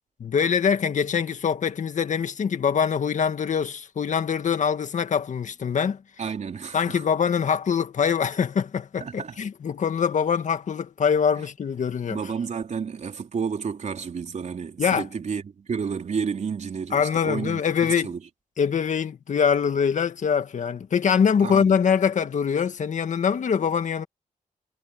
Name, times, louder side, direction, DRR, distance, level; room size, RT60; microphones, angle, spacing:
voice 1, 0.2-6.0 6.7-12.2 14.8-15.1 16.9-18.1 18.6-24.1, left 7 dB, 65° left, 1.9 m, -23 dB
voice 2, 6.2-7.0 9.0-9.4 11.4-11.5 12.0-18.2 21.4-21.7, right 6 dB, 60° right, 3.7 m, -31 dB
cardioid pair, 75°, 14 cm